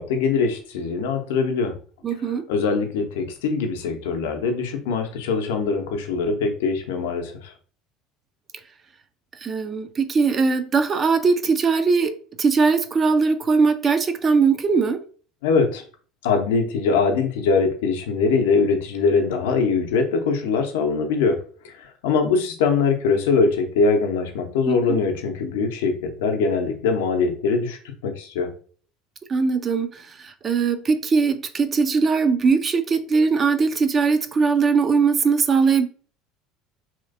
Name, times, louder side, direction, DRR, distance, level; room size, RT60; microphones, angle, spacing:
voice 1, 0.0-1.7 2.5-7.5 15.4-15.8 16.2-21.4 21.8-28.5, left 4 dB, 65° left, 0.6 m, -22 dB
voice 2, 2.0-2.5 9.4-15.0 24.7-25.0 29.3-29.9 30.2-35.9, right 5 dB, 30° right, 0.4 m, -20 dB
3.1 x 2.8 x 2.5 m
figure-of-eight pair, 70°, 0 cm